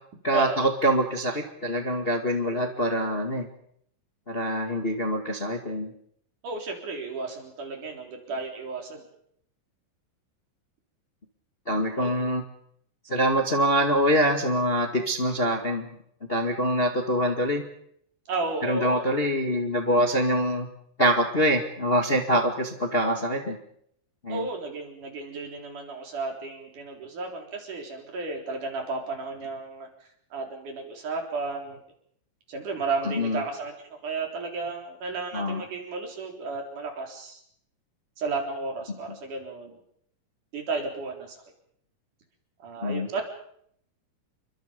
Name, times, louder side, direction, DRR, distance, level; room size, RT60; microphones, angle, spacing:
voice 1, 0.2-3.5 4.3-5.9 11.7-12.4 13.0-15.9 16.3-17.6 18.6-20.7 21.0-23.6 24.2-24.5 33.0-33.4 35.3-35.6 42.8-43.2, equal, 25° left, 4 dB, 1.5 m, -25 dB
voice 2, 6.4-9.1 12.0-12.1 18.3-19.1 24.3-29.9 30.3-31.8 32.5-37.4 38.2-39.8 40.5-41.4 42.6-43.2, right 3 dB, 65° right, 2 dB, 5.5 m, -33 dB
29.0 x 24.0 x 5.2 m, 0.69 s
omnidirectional pair, 3.8 m